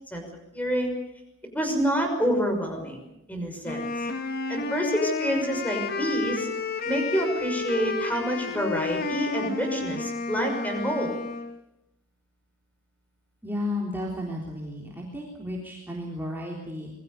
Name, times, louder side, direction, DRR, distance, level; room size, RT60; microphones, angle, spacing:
voice 1, 0.5-0.9 1.5-3.9 4.5-6.5 6.9-11.1, equal, 10° left, 4 dB, 6.1 m, -27 dB
Wind instrument woodwind instrument, 3.6-11.6, left 4 dB, 50° left, 2.1 m, -31 dB
voice 2, 13.4-16.9, left 1 dB, 10° right, -2 dB, 3.7 m, -33 dB
27.5 x 21.5 x 6.8 m, 0.87 s
head